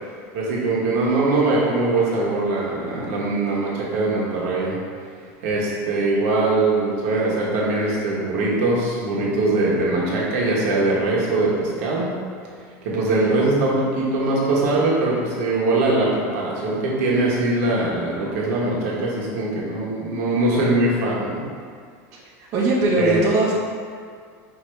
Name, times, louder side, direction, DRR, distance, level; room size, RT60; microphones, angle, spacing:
voice 1, 0.3-4.8 5.4-12.1 12.8-21.4 23.0-23.2, right 2 dB, 70° right, -5 dB, 1.1 m, -21 dB
voice 2, 22.4-23.5, right 2 dB, 40° right, -7 dB, 0.7 m, -20 dB
5.5 x 2.8 x 3.2 m, 2.1 s
supercardioid pair, 160°, 8 cm